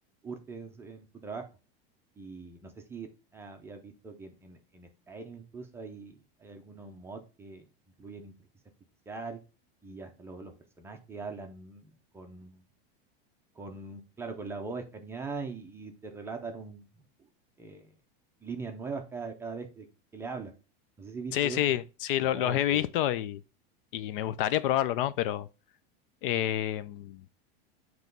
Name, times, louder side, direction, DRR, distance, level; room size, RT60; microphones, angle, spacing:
voice 1, 0.2-1.4 2.2-7.7 8.0-8.3 9.1-9.4 9.8-10.5 10.8-12.6 13.6-16.9 17.6-17.9 18.4-19.9 20.1-20.5 21.0-21.7 22.2-22.9, right 4 dB, 10° right, 0.5 m, -41 dB
voice 2, 21.3-23.4 23.9-25.5 26.2-27.2, left 12 dB, 60° left, 0.5 m, -28 dB
7.9 x 3.1 x 5.2 m
supercardioid pair, 170°, 31 cm